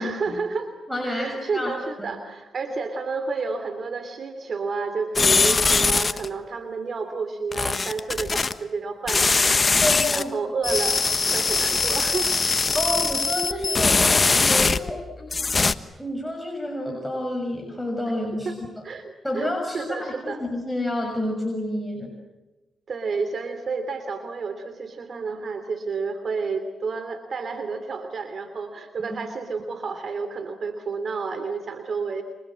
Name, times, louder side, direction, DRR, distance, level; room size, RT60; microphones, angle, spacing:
voice 1, 0.0-0.7 1.0-9.8 10.1-11.0 11.3-12.3 18.4-18.6 18.8-19.5 19.7-20.4 22.9-32.2, right 4 dB, 60° right, 9 dB, 3.0 m, -30 dB
voice 2, 0.9-2.1 5.4-5.6 9.8-10.3 12.7-15.5 16.0-18.8 19.2-22.1 29.0-29.1, left 1 dB, 5° left, 0 dB, 6.4 m, -29 dB
sound 1, 5.2-6.3 7.5-8.5 9.1-10.2 10.6-15.0 15.3-15.7, left 4 dB, 35° left, 1.2 m, -21 dB
29.5 x 26.5 x 7.6 m, 1.1 s
cardioid pair, 75°, 0 cm